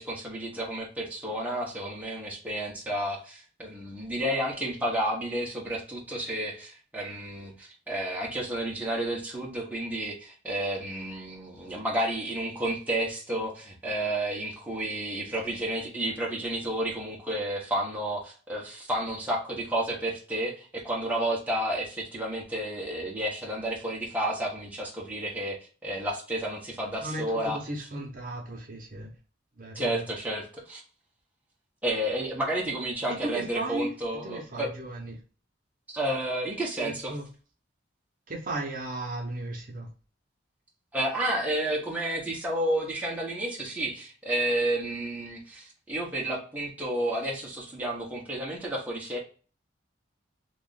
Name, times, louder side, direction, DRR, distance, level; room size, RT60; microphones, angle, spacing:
voice 1, 0.0-27.6 29.7-30.8 31.8-34.7 35.9-37.2 40.9-49.2, right 1 dB, 10° right, -4 dB, 0.9 m, -31 dB
voice 2, 27.0-29.1 29.6-30.1 33.1-35.2 36.8-37.3 38.3-39.9, right 2 dB, 45° right, 0 dB, 0.9 m, -36 dB
3.0 x 2.5 x 3.8 m, 0.38 s
head